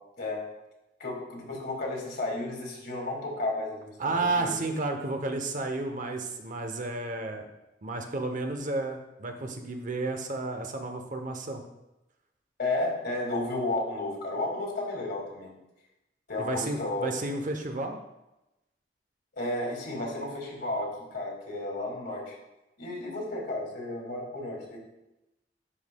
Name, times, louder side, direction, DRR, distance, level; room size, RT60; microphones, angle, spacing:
voice 1, 1.0-4.5 12.6-15.5 16.3-17.1 19.3-22.3 22.8-24.8, left 2 dB, 65° left, -1 dB, 2.1 m, -33 dB
voice 2, 4.0-7.5 7.8-11.6 16.4-18.0, right 2 dB, 45° right, 5 dB, 0.7 m, -32 dB
11.0 x 5.4 x 2.2 m, 0.94 s
head